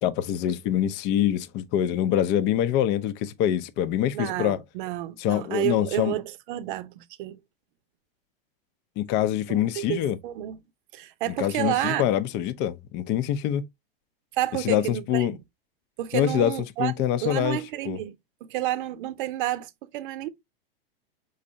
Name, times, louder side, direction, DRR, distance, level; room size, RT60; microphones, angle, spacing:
voice 1, 0.0-4.6 5.2-6.1 9.0-10.2 11.4-13.7 14.6-15.3 16.1-17.6 17.9-18.0, left 11 dB, 35° left, 0.6 m, -25 dB
voice 2, 4.1-7.4 9.5-10.6 10.9-12.0 14.3-15.3 16.0-16.9 17.2-18.1 18.5-20.3, right 14 dB, 55° right, 0.7 m, -30 dB
5.1 x 3.2 x 2.6 m
hypercardioid pair, 115°, 30 cm